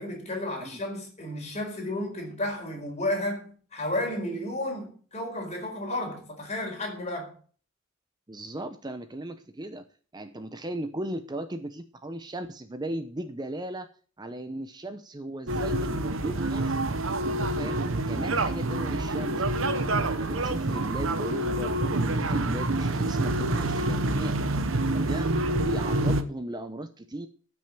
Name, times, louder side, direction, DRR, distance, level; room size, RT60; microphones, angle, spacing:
voice 1, 0.0-7.3, left 1 dB, 35° left, 4.5 m, -32 dB
voice 2, 8.3-9.9 10.1-13.9 14.2-19.4 19.8-24.5 24.9-25.3 25.6-27.3, right 1 dB, 20° right, 0.7 m, -37 dB
sound 1, 15.5-26.2, right 2 dB, 75° right, 1.0 m, -27 dB
13.0 x 6.3 x 7.5 m
head